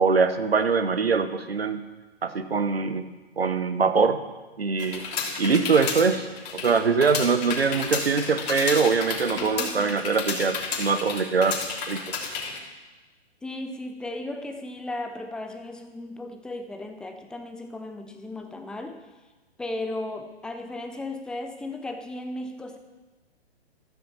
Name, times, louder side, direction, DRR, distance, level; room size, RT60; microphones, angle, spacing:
voice 1, 0.0-1.9 2.2-3.1 3.4-4.2 4.6-5.0 5.4-6.3 6.5-11.6 11.9-12.0, right 5 dB, 70° right, 9 dB, 1.3 m, -23 dB
sound 1, 4.8-12.6, left 5 dB, 40° left, 3.0 m, -32 dB
voice 2, 9.4-10.0 13.4-19.0 19.6-22.8, left 2 dB, ahead, 5 dB, 0.5 m, -36 dB
15.0 x 13.5 x 4.4 m, 1.2 s
figure-of-eight pair, 120°, 32 cm